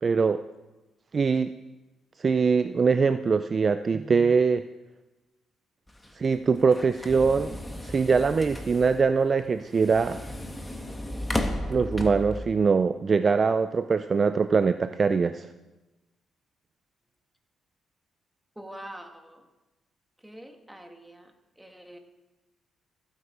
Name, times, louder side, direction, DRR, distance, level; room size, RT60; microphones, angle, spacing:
voice 1, 0.0-0.4 1.1-1.5 2.2-4.6 6.2-7.6 7.8-10.2 11.7-15.5, right 5 dB, 40° right, 11 dB, 0.4 m, -23 dB
sound 1, 5.9-12.4, left 1 dB, 10° left, 1.3 m, -35 dB
voice 2, 18.5-19.4 20.2-22.0, right 1 dB, 5° right, 5 dB, 1.6 m, -45 dB
15.0 x 8.2 x 4.9 m, 1.1 s
cardioid pair, 90°, 0 cm